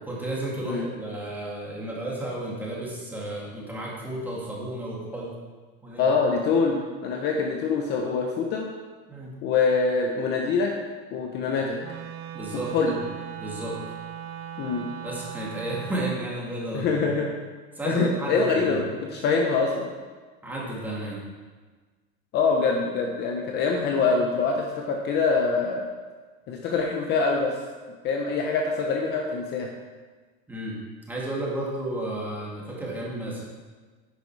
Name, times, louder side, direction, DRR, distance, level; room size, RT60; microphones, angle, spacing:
voice 1, 0.0-5.3 5.8-6.1 9.1-9.3 12.3-13.0 13.4-13.8 15.0-17.1 17.7-18.8 20.4-21.2 30.5-30.8 31.1-33.4, right 1 dB, 5° right, -5 dB, 2.1 m, -32 dB
voice 2, 6.0-8.7 9.4-10.7 11.1-11.8 12.5-12.9 14.6-14.8 16.7-17.3 17.8-19.9 22.3-25.8 26.5-27.5 28.0-29.7, left 4 dB, 35° left, 1 dB, 0.9 m, -24 dB
Wind instrument woodwind instrument, 11.8-16.2, right 10 dB, 85° right, 1.7 m, -38 dB
10.5 x 9.8 x 4.7 m, 1.4 s
cardioid pair, 175°, 30 cm